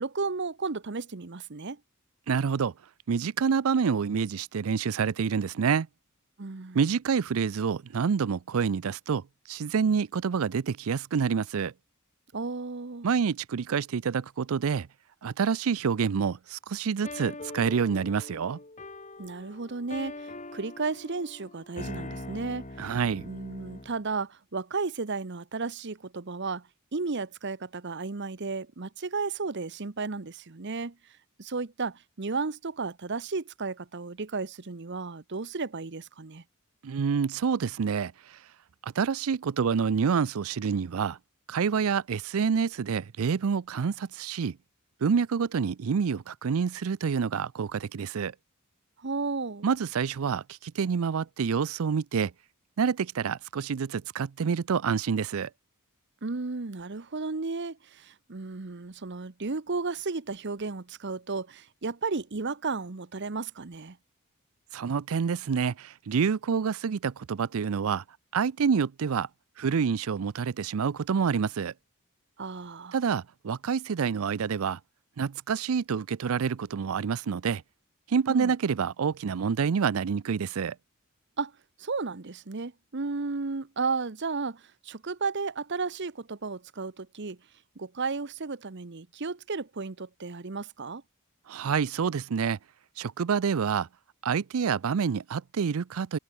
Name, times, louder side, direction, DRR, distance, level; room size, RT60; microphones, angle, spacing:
voice 1, 0.0-1.8 6.4-6.8 12.3-13.1 19.2-23.0 23.2-31.0 31.4-36.4 49.0-49.7 56.2-64.0 72.4-73.0 78.3-78.6 81.4-81.5 81.8-87.4 87.8-91.0, right 4 dB, 55° right, 0.9 m, -34 dB
voice 2, 2.3-2.7 3.1-5.9 6.7-9.2 9.5-11.7 13.0-14.9 15.2-18.6 22.8-23.3 36.8-38.1 38.8-41.2 41.5-44.6 45.0-48.3 49.6-52.3 52.8-55.5 64.7-68.0 68.3-69.3 69.6-71.7 72.9-74.8 75.2-77.6 78.1-80.7 91.5-92.6 93.0-93.9 94.2-96.2, right 6 dB, 75° right, 0.5 m, -27 dB
sound 1, 17.0-24.0, left 2 dB, 35° left, 3.1 m, -42 dB
head